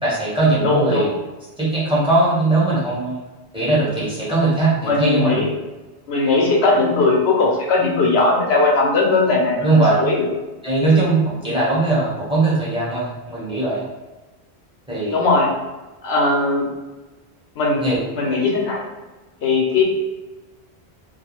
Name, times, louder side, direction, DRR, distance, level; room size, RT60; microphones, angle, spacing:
voice 1, 0.0-1.1 1.6-3.2 3.5-5.4 9.6-9.9 10.6-13.8 14.9-15.2 17.8-18.0 18.3-18.4, right 2 dB, 5° right, -8 dB, 0.8 m, -19 dB
voice 2, 0.6-1.1 4.9-5.5 6.1-10.3 15.1-15.5 16.0-16.7 17.6-17.9 18.1-18.8 19.4-19.8, left 3 dB, 75° left, -1 dB, 0.9 m, -18 dB
2.3 x 2.2 x 2.9 m, 1.2 s
omnidirectional pair, 1.1 m